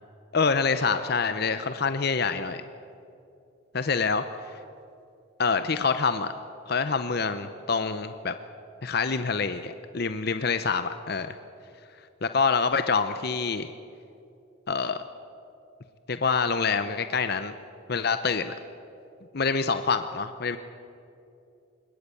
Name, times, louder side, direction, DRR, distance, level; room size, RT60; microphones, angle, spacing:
voice 1, 0.3-2.6 3.7-4.5 5.4-6.3 6.7-8.3 8.8-11.3 12.2-13.7 14.7-15.0 16.1-17.6 17.9-18.5 19.3-20.6, left 5 dB, 50° left, 10 dB, 0.7 m, -26 dB
20.5 x 20.5 x 8.5 m, 2.7 s
head